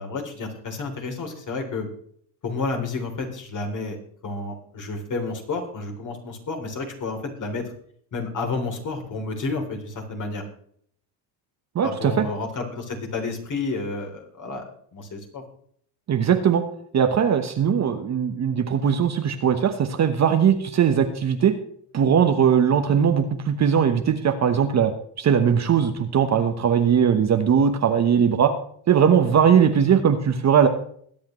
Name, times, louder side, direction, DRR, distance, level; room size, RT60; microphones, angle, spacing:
voice 1, 0.0-1.9 2.4-4.0 4.2-7.6 8.1-10.4 11.8-14.6 14.9-15.4, left 3 dB, 35° left, 3 dB, 3.4 m, -30 dB
voice 2, 11.7-12.2 16.1-16.6 16.9-21.5 21.9-24.9 25.2-28.5 28.9-30.7, right 8 dB, 30° right, 7 dB, 1.1 m, -19 dB
21.0 x 8.6 x 3.1 m, 0.62 s
supercardioid pair, 110°, 50 cm